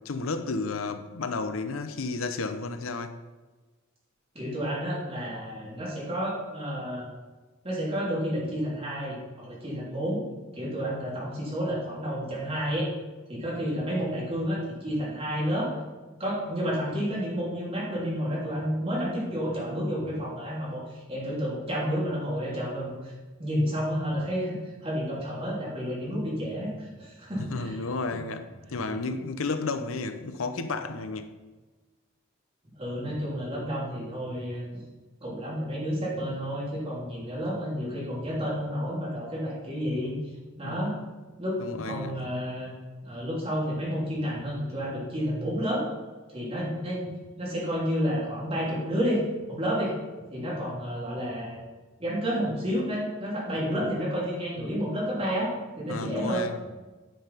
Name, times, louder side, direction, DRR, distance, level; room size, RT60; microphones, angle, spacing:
voice 1, 0.0-3.1 27.4-31.3 40.6-41.0 41.6-42.2 55.9-56.6, left 3 dB, 85° left, 0.7 m, -32 dB
voice 2, 4.3-7.1 7.6-10.2 10.5-12.9 13.3-15.7 16.2-23.1 23.4-27.8 28.1-28.2 28.7-28.9 32.8-34.6 35.2-40.1 40.6-40.9 41.4-42.7 43.0-45.8 46.3-49.2 49.5-50.0 50.3-51.6 52.0-56.4, equal, 30° right, 3.3 m, -30 dB
10.0 x 5.6 x 5.6 m
head